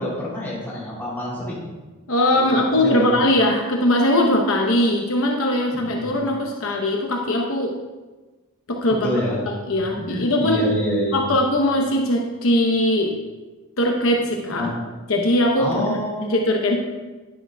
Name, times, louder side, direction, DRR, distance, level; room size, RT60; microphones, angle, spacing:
voice 1, 0.0-1.7 2.3-3.2 5.7-6.1 8.9-9.4 9.8-11.2 14.5-14.7 15.6-16.5, equal, 10° left, -7 dB, 3.1 m, -27 dB
voice 2, 2.1-7.7 8.7-9.2 9.5-10.7 11.1-13.2 13.8-14.7 15.1-16.0 16.3-16.8, left 1 dB, 70° left, 1 dB, 0.9 m, -20 dB
10.5 x 10.5 x 2.3 m, 1.2 s
head